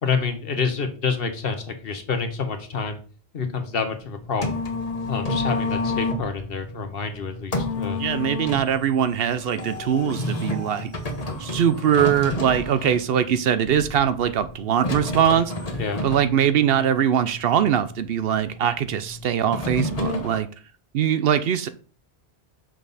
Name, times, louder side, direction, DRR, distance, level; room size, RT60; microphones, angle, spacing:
voice 1, 0.0-3.0 3.3-4.6 5.1-8.0 15.8-16.0, left 5 dB, 65° left, 1.2 m, -28 dB
sound 1, 4.0-20.4, left 2 dB, 35° left, 1.2 m, -31 dB
voice 2, 8.0-10.9 11.4-15.5 16.0-20.5 20.9-21.7, right 9 dB, 70° right, 0.8 m, -22 dB
6.2 x 5.4 x 4.0 m
omnidirectional pair, 1.1 m